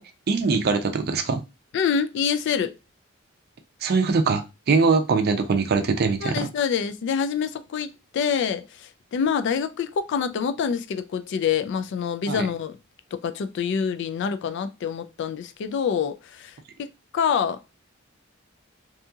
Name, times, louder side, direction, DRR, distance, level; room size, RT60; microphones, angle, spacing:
voice 1, 0.3-1.4 3.8-6.5 12.3-12.5, right 4 dB, 50° right, 0.4 m, -22 dB
voice 2, 1.7-2.7 6.2-12.8 13.1-16.9 17.1-17.6, left 7 dB, 60° left, 0.3 m, -26 dB
2.7 x 2.7 x 2.3 m
head